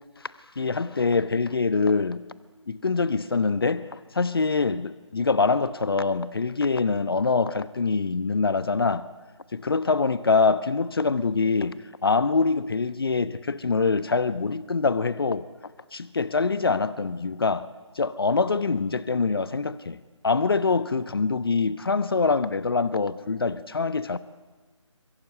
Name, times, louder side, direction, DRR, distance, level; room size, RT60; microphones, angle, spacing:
voice 1, 0.6-2.2 2.7-3.9 4.1-9.0 9.5-15.4 15.9-17.7 18.0-20.0 20.2-24.2, left 4 dB, 50° left, 1.0 m, -24 dB
27.0 x 23.0 x 9.2 m
figure-of-eight pair, 150°, 16 cm